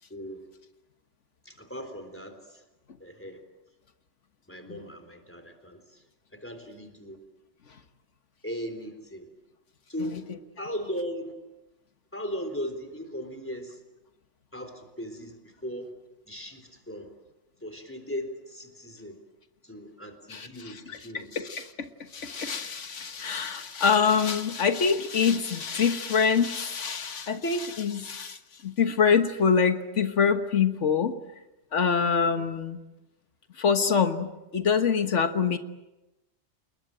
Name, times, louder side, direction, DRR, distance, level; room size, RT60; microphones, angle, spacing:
voice 1, 0.1-0.4 1.5-2.6 3.0-3.4 4.5-6.0 6.4-7.2 8.4-9.3 9.9-10.3 10.6-11.3 12.1-13.8 14.5-15.9 16.3-17.1 17.6-19.2 19.6-21.3 32.4-32.5, equal, 10° left, 7 dB, 3.8 m, -38 dB
voice 2, 20.3-31.2 31.7-32.8 33.6-35.6, left 6 dB, 90° left, 8 dB, 1.7 m, -25 dB
29.5 x 21.0 x 9.0 m, 1.0 s
omnidirectional pair, 1.2 m